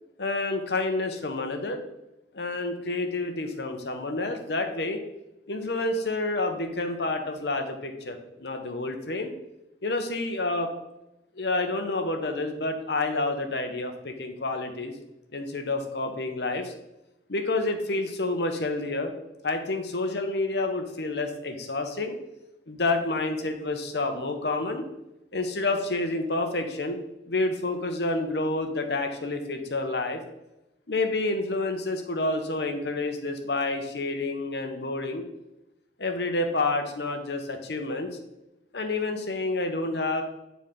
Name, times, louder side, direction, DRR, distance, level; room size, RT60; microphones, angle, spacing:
voice 1, 0.2-1.8 2.3-5.0 5.5-9.3 9.8-10.7 11.4-15.0 15.3-16.7 17.3-19.1 19.4-22.1 22.7-24.8 25.3-27.0 27.3-30.2 30.9-35.2 36.0-38.1 38.7-40.2, left 2 dB, 70° left, 5 dB, 1.0 m, -29 dB
9.5 x 4.1 x 3.8 m, 0.90 s
head